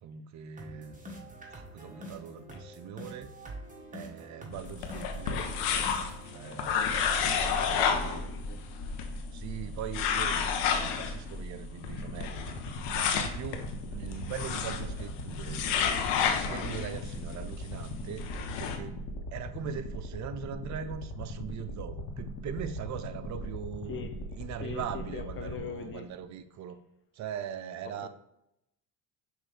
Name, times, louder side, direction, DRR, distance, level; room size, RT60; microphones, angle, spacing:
voice 1, 0.0-3.3 3.9-5.4 6.2-8.3 9.3-16.0 16.5-19.1 19.3-24.1 24.4-26.8 27.1-28.1, right 8 dB, 40° right, 0.5 m, -41 dB
sound 1, 0.6-8.5, right 1 dB, 15° right, 1.2 m, -47 dB
sound 2, 4.5-18.8, left 6 dB, 75° left, 0.8 m, -32 dB
voice 2, 6.4-7.6 8.1-8.6 23.9-24.1 24.6-26.1 27.8-28.1, left 6 dB, 25° left, 0.6 m, -43 dB
sound 3, 11.9-26.2, left 1 dB, 60° left, 1.1 m, -40 dB
6.0 x 2.6 x 3.3 m
supercardioid pair, 75°, 46 cm